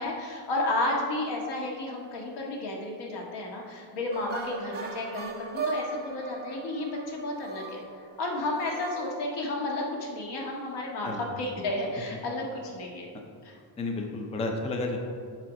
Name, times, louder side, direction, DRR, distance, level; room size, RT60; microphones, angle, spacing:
voice 1, 0.0-7.8 8.2-13.1 13.4-13.6, left 2 dB, 70° left, -1 dB, 1.7 m, -32 dB
sound 1, 4.1-9.7, right 4 dB, 25° right, 0.7 m, -38 dB
voice 2, 13.8-15.0, left 2 dB, 15° left, 3 dB, 0.4 m, -31 dB
7.3 x 6.0 x 5.1 m, 2.2 s
cardioid pair, 175°, 43 cm